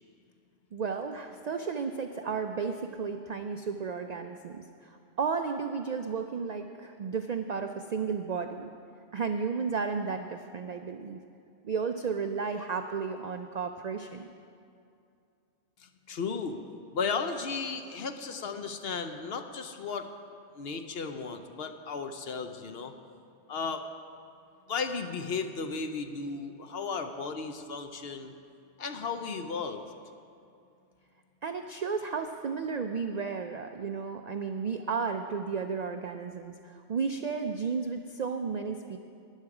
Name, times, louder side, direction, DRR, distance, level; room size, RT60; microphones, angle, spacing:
voice 1, 0.7-8.7 9.1-11.2 11.6-14.3 31.4-39.0, right 5 dB, 65° right, 6 dB, 0.4 m, -33 dB
voice 2, 15.8-16.6 16.9-20.1 20.5-22.9 23.5-23.8 24.7-28.3 28.8-29.8, left 5 dB, 60° left, 7 dB, 0.8 m, -35 dB
13.0 x 10.0 x 4.8 m, 2.5 s
omnidirectional pair, 1.3 m